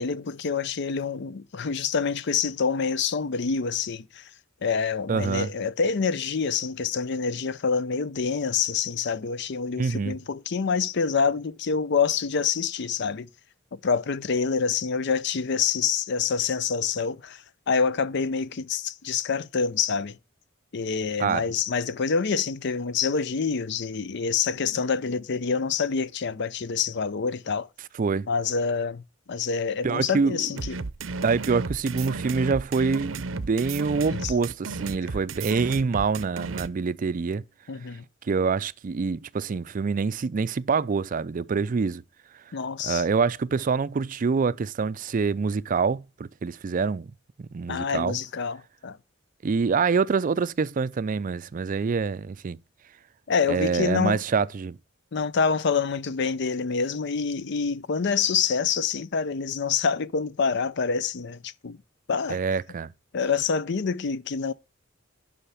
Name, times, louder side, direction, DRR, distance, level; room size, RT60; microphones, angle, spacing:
voice 1, 0.0-4.2 4.6-13.3 13.8-17.4 17.7-20.2 20.7-27.7 28.3-29.0 29.3-30.8 34.1-34.3 37.7-38.0 42.5-43.0 47.7-49.0 53.3-54.2 55.1-61.8 62.1-62.4 63.1-64.5, left 5 dB, 60° left, 0.6 m, -26 dB
voice 2, 5.1-5.5 9.8-10.1 21.2-21.4 28.0-28.3 29.8-30.4 31.2-37.4 38.2-42.0 42.8-47.1 47.4-48.2 49.4-52.6 53.5-54.8 62.3-62.9, right 5 dB, 45° right, 0.4 m, -26 dB
sound 1, 30.6-36.7, right 3 dB, 85° right, 0.7 m, -33 dB
10.0 x 5.7 x 5.6 m
head